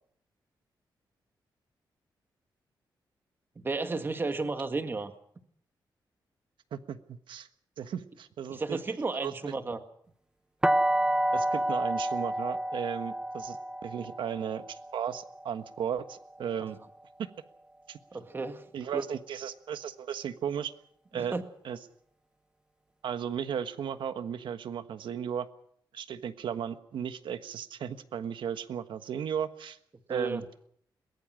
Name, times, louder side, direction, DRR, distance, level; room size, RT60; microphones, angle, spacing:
voice 1, 3.6-5.1 8.5-9.8 18.1-18.7 18.9-19.0 21.1-21.4 30.1-30.4, right 3 dB, 25° right, 7 dB, 1.8 m, -33 dB
voice 2, 6.7-7.5 7.8-8.8 9.1-9.3 11.3-13.6 13.8-16.8 17.2-17.3 17.9-18.0 18.7-20.7 21.1-21.3 21.6-21.8 23.0-25.5 25.9-29.8 30.1-30.4, right 8 dB, 85° right, 10 dB, 1.4 m, -35 dB
sound 1, 10.6-16.5, right 1 dB, 10° right, 1.1 m, -30 dB
22.5 x 20.5 x 6.3 m, 0.66 s
wide cardioid pair, 145°, 8 cm